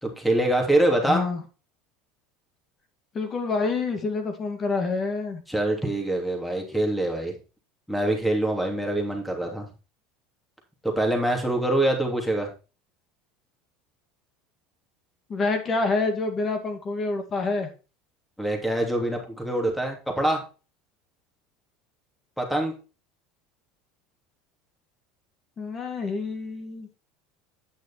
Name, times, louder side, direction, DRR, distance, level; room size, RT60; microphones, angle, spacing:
voice 1, 0.0-1.2 5.5-7.4 7.9-9.7 10.8-12.5 18.4-20.4 22.4-22.7, right 1 dB, 5° left, 2 dB, 3.0 m, -24 dB
voice 2, 1.1-1.4 3.1-5.4 15.3-17.7 25.6-26.9, left 3 dB, 35° left, 5 dB, 2.3 m, -27 dB
9.5 x 6.2 x 4.3 m, 0.33 s
supercardioid pair, 105°, 0 cm